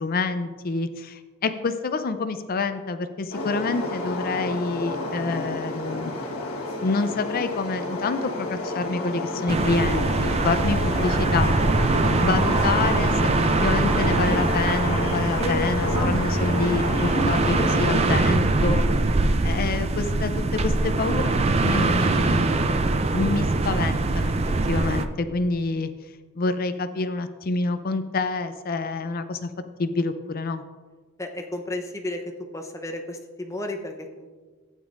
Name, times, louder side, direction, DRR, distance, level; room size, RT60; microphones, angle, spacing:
voice 1, 0.0-6.1 6.7-11.6 12.2-13.3 13.6-18.9 19.4-22.8 23.1-24.3 24.7-25.9 26.4-29.5 29.8-30.6, left 3 dB, 45° left, 10 dB, 0.4 m, -27 dB
sound 1, 3.3-18.0, left 2 dB, 75° left, 1.3 m, -30 dB
sound 2, 9.5-25.1, right 3 dB, 30° right, 0.4 m, -23 dB
voice 2, 31.2-32.2 32.5-34.3, left 1 dB, 15° left, 3 dB, 0.8 m, -33 dB
12.5 x 8.9 x 2.5 m, 1.4 s
head